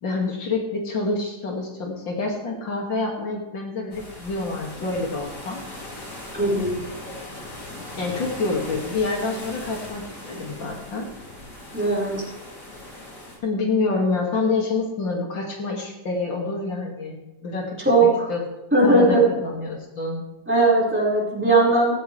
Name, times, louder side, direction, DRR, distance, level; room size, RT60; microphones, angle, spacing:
voice 1, 0.0-5.6 7.0-7.1 8.0-11.1 13.4-18.4 18.8-20.2, left 3 dB, 85° left, -1 dB, 3.1 m, -27 dB
sound 1, 3.9-13.4, left 1 dB, 65° left, 3.8 m, -39 dB
voice 2, 6.3-6.7 11.7-12.2 17.8-18.3 18.7-19.2 20.5-22.0, right 2 dB, 5° right, -5 dB, 5.2 m, -19 dB
16.5 x 15.5 x 3.4 m, 0.97 s
omnidirectional pair, 2.0 m